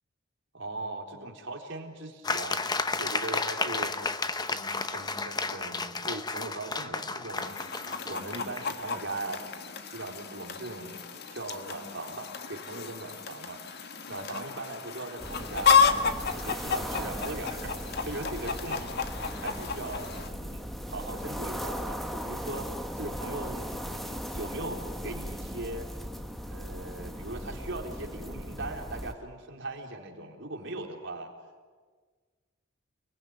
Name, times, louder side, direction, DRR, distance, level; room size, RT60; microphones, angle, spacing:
voice 1, 0.5-2.6 3.0-4.0 4.4-9.4 9.8-16.1 16.3-22.7 23.0-25.9 26.5-31.3, right 2 dB, 60° right, 2 dB, 4.0 m, -40 dB
sound 1, 2.2-8.7, left 3 dB, 20° left, 1.0 m, -32 dB
Chicken rooster, 7.4-20.3, left 6 dB, 50° left, 1.6 m, -31 dB
sound 2, 15.2-29.1, equal, ahead, 1.6 m, -38 dB
29.5 x 20.5 x 9.6 m, 1.5 s
head